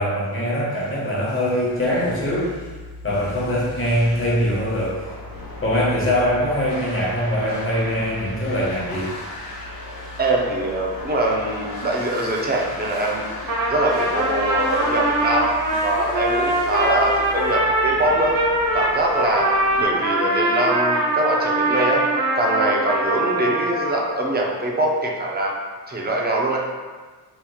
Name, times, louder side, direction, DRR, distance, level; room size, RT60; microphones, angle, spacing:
voice 1, 0.0-2.5 3.0-5.1 5.6-9.1, equal, 30° left, -6 dB, 0.8 m, -22 dB
sound 1, 0.7-19.8, left 2 dB, 65° left, 1.0 m, -37 dB
voice 2, 10.2-18.3 18.7-19.5 19.8-22.0 22.3-25.5 25.9-26.6, right 1 dB, 25° right, -1 dB, 0.4 m, -23 dB
Trumpet, 13.3-24.1, right 1 dB, 80° right, 1.1 m, -22 dB
3.4 x 3.0 x 2.3 m, 1.4 s
wide cardioid pair, 145°, 42 cm